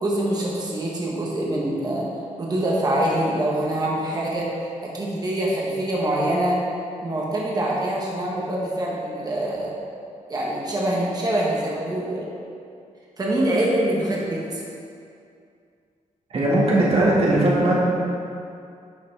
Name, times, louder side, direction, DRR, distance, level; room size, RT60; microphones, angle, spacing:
voice 1, 0.0-2.0 2.4-4.5 4.8-6.6 7.0-9.7 10.3-12.3 13.2-14.6, right 1 dB, 30° right, -4 dB, 1.4 m, -24 dB
voice 2, 16.3-17.9, right 1 dB, 50° right, -6 dB, 2.1 m, -19 dB
11.0 x 5.9 x 3.6 m, 2.4 s
wide cardioid pair, 165°, 13 cm